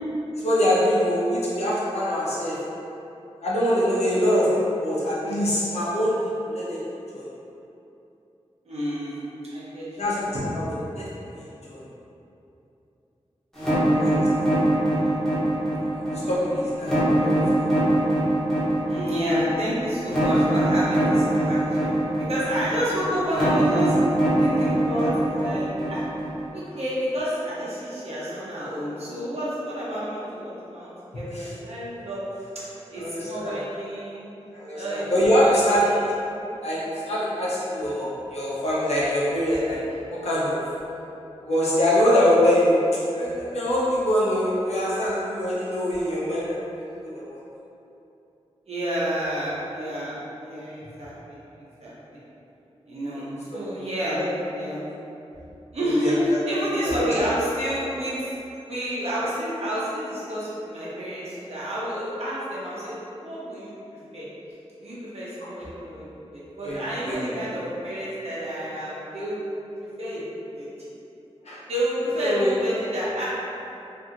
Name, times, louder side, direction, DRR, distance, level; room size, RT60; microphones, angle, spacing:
voice 1, 0.4-2.6 3.4-6.8 7.1-7.2 10.0-11.9 14.0-14.5 15.9-17.7 21.1-21.2 25.3-25.4 31.3-31.5 32.9-33.6 34.5-35.9 36.6-39.8 40.2-40.6 41.4-42.8 43.1-47.4 53.1-53.2 53.5-53.6 54.0-54.3 55.8-56.4 56.8-57.1 65.4-65.5 66.6-66.8 67.0-67.5 71.4-71.6 72.2-72.5, equal, 75° left, -7 dB, 0.7 m, -24 dB
voice 2, 8.7-9.2 9.5-10.0 13.6-13.9 14.9-15.2 16.5-16.7 18.9-26.0 26.5-32.2 32.9-34.3 34.7-35.1 35.4-36.0 36.4-36.5 48.7-51.4 51.8-52.2 52.9-54.2 54.5-54.8 55.7-58.3 58.6-64.3 64.8-66.1 66.3-70.2 70.5-70.9 71.7-73.2, equal, 70° right, -9 dB, 0.9 m, -30 dB
sound 1, 13.6-26.5, right 1 dB, 5° left, 0.9 m, -22 dB
2.7 x 2.5 x 2.8 m, 2.9 s
wide cardioid pair, 90°, 11 cm